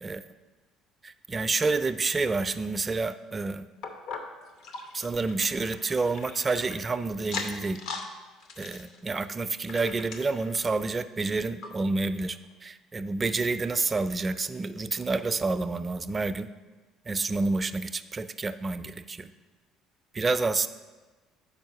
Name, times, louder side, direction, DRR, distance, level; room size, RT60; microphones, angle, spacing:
voice 1, 1.0-3.7 4.9-7.8 8.6-16.5 17.1-19.3 20.1-20.7, right 3 dB, 30° right, 12 dB, 0.3 m, -29 dB
sound 1, 3.8-6.8 7.2-8.1 8.4-10.8 11.2-11.3 11.6-11.7 12.4-12.5, left 4 dB, 70° left, 0.7 m, -40 dB
5.4 x 4.4 x 5.6 m, 1.3 s
hypercardioid pair, 65°, 0 cm